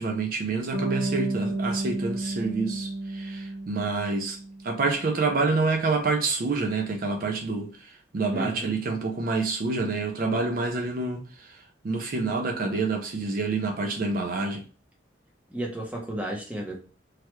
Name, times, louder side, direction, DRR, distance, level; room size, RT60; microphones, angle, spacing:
voice 1, 0.0-4.4 4.6-14.6, right 3 dB, 50° right, 0.4 m, -28 dB
Bass guitar, 0.7-4.8, right 2 dB, 80° right, 0.7 m, -31 dB
voice 2, 8.3-8.8 15.5-16.8, right 1 dB, 5° right, 0.7 m, -33 dB
3.2 x 2.3 x 3.0 m
head